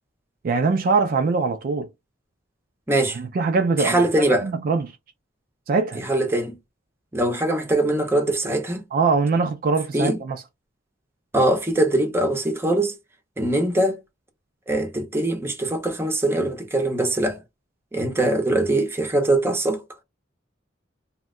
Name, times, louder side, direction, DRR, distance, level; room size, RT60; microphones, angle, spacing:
voice 1, 0.4-1.9 3.2-4.0 4.4-4.9 5.7-6.0 8.9-10.4, right 4 dB, 50° right, 0.3 m, -22 dB
voice 2, 2.9-3.2 3.8-4.5 6.0-6.6 7.1-8.8 9.9-10.2 11.3-13.0 13.4-14.0 14.7-17.4 17.9-19.8, right 1 dB, 15° right, 0.6 m, -22 dB
2.7 x 2.1 x 3.6 m
head